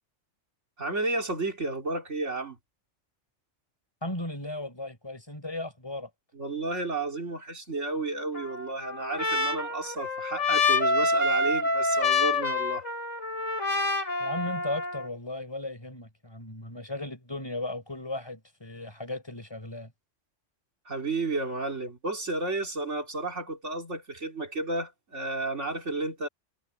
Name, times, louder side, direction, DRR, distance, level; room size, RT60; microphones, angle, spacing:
voice 1, 0.8-2.6 6.3-12.8 20.9-26.3, right 2 dB, 65° right, 3.5 m, -32 dB
voice 2, 4.0-6.1 14.2-19.9, left 2 dB, 20° left, 5.2 m, -36 dB
Trumpet, 8.3-15.1, left 3 dB, 80° left, 6.7 m, -27 dB
omnidirectional pair, 1.3 m